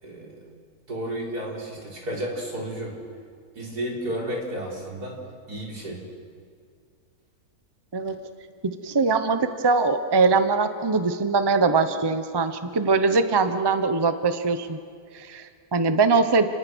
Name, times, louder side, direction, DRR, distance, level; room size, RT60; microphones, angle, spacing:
voice 1, 0.0-0.4 0.9-2.9 3.6-5.2 5.5-6.0, right 1 dB, 85° right, -3 dB, 5.2 m, -32 dB
voice 2, 8.8-14.8 15.1-16.5, right 4 dB, 20° right, 9 dB, 0.9 m, -22 dB
29.5 x 20.0 x 6.3 m, 2.2 s
omnidirectional pair, 1.6 m